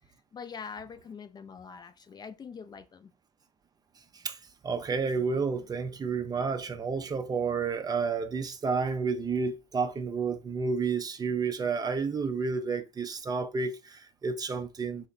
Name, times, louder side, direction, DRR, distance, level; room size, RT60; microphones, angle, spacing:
voice 1, 0.3-3.1, left 6 dB, 30° left, 0.4 m, -43 dB
voice 2, 4.1-15.1, right 5 dB, 25° right, 0.5 m, -31 dB
3.2 x 2.1 x 3.9 m
hypercardioid pair, 70°, 15 cm